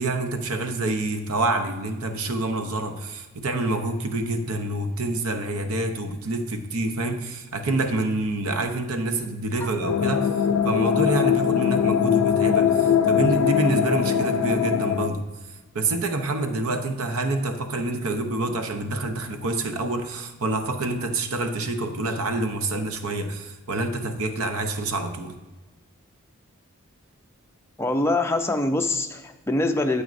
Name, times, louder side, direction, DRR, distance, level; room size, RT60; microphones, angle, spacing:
voice 1, 0.0-10.3 10.6-15.2 15.7-25.4, right 2 dB, 80° right, 7 dB, 0.8 m, -27 dB
sound 1, 9.8-15.1, left 8 dB, 80° left, 0.4 m, -21 dB
voice 2, 27.8-30.0, left 2 dB, 10° left, 5 dB, 0.5 m, -24 dB
9.1 x 7.7 x 2.6 m, 1.1 s
head